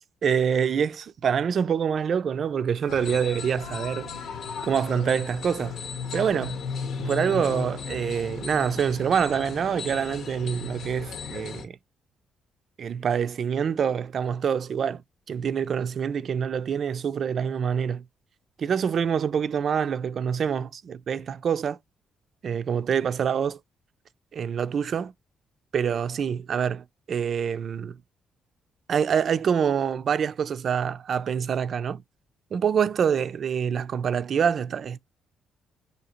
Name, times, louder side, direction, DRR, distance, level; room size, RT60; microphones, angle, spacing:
voice 1, 0.0-4.1 4.6-5.8 6.1-6.6 7.0-11.8 12.8-15.0 15.3-18.0 18.6-21.8 22.4-23.6 24.3-25.1 25.7-28.0 28.9-32.0 32.5-35.0, right 7 dB, 55° right, 0.4 m, -26 dB
sound 1, 2.9-11.6, left 6 dB, 70° left, 0.9 m, -35 dB
5.0 x 2.8 x 2.9 m
cardioid pair, 90°, 0 cm